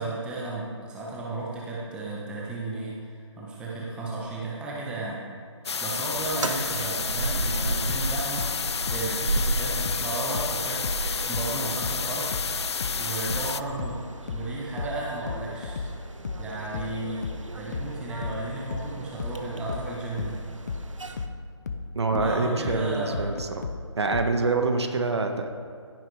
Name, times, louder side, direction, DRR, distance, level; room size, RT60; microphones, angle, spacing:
voice 1, 0.0-5.2 5.6-12.3 12.9-14.0 14.3-15.9 16.4-20.4 22.1-23.3 24.8-24.9, right 2 dB, 5° right, -5 dB, 1.3 m, -34 dB
sound 1, 5.6-13.6, left 5 dB, 60° left, 0.4 m, -30 dB
sound 2, 6.1-21.3, right 2 dB, 75° right, 1.3 m, -35 dB
sound 3, 7.9-11.1 11.3-24.4, left 4 dB, 35° left, 0.8 m, -34 dB
voice 2, 21.9-23.5 23.9-25.5, right 3 dB, 60° right, 5 dB, 1.5 m, -25 dB
15.5 x 9.4 x 4.8 m, 2.3 s
figure-of-eight pair, 155°, 16 cm